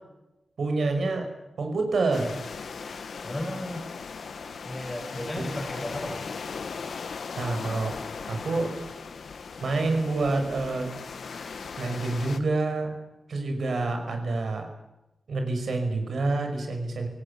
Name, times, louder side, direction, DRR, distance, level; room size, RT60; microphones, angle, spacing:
voice 1, 0.6-1.3 1.6-2.3 5.4-5.5 7.4-7.9 8.3-8.7 9.6-10.9 11.8-12.9 13.3-14.7 15.3-17.1, right 3 dB, 65° right, 5 dB, 5.7 m, -27 dB
sound 1, 2.1-12.4, left 5 dB, 65° left, 1.8 m, -38 dB
voice 2, 3.2-3.9 4.6-6.3, left 1 dB, 10° left, 3 dB, 5.8 m, -34 dB
24.0 x 19.0 x 8.7 m, 0.96 s
wide cardioid pair, 165°, 0 cm